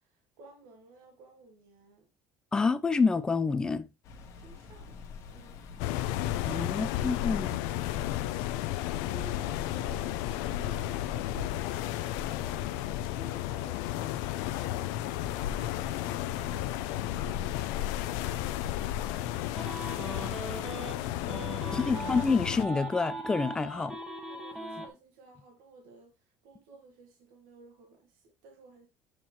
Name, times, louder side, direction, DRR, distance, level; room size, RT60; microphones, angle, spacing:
voice 1, 0.0-2.1 4.3-6.0 6.5-6.7 7.1-7.2 7.7-19.8 20.2-22.1 24.3-26.1 26.4-28.9, right 4 dB, 85° right, 1.4 m, -55 dB
voice 2, 2.5-3.9 6.4-7.6 21.7-24.0, left 4 dB, 10° left, 0.3 m, -28 dB
sound 1, 4.0-22.0, left 5 dB, 50° left, 1.1 m, -46 dB
sound 2, 5.8-22.6, left 14 dB, 85° left, 0.4 m, -33 dB
sound 3, 19.5-20.9 21.3-24.9, right 2 dB, 10° right, 1.1 m, -39 dB
7.3 x 4.3 x 3.0 m
cardioid pair, 160°, 7 cm